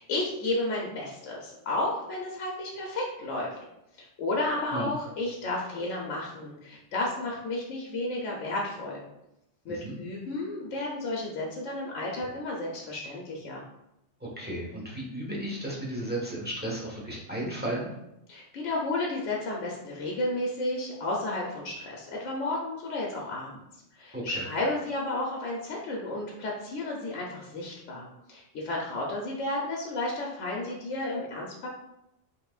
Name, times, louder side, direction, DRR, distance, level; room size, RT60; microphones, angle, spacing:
voice 1, 0.0-3.6 4.2-9.0 9.6-13.6 18.3-23.6 24.0-31.7, left 2 dB, 75° left, -2 dB, 1.1 m, -32 dB
voice 2, 9.7-10.0 14.2-17.9 24.1-24.5, right 1 dB, 10° right, -5 dB, 1.2 m, -34 dB
5.7 x 3.8 x 2.4 m, 0.85 s
omnidirectional pair, 1.3 m